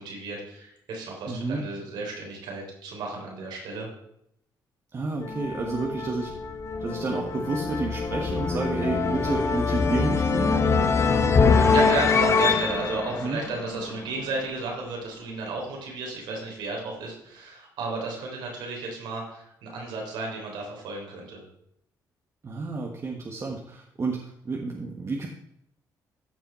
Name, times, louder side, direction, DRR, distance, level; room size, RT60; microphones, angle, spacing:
voice 1, 0.0-3.9 11.7-21.4, right 3 dB, 90° right, 0 dB, 3.6 m, -33 dB
voice 2, 1.3-1.6 4.9-6.3 6.8-10.6 13.2-13.4 22.4-25.3, right 3 dB, 40° right, 0 dB, 1.4 m, -30 dB
sound 1, 5.2-14.2, left 4 dB, 40° left, 1.1 m, -24 dB
14.5 x 5.4 x 4.4 m, 0.75 s
cardioid pair, 90°, 8 cm